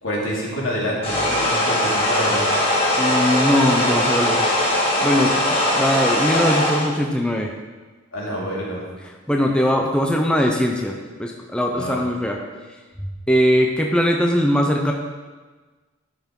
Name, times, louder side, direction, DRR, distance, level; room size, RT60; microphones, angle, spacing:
voice 1, 0.0-2.5 8.1-8.9 11.7-12.0, equal, 80° left, -4 dB, 2.4 m, -27 dB
sound 1, 1.0-6.9, left 1 dB, 25° left, 1.5 m, -20 dB
voice 2, 3.0-4.5 5.0-7.5 9.3-12.4 13.3-14.9, equal, 5° left, 1 dB, 0.5 m, -20 dB
11.5 x 5.9 x 3.6 m, 1.3 s
head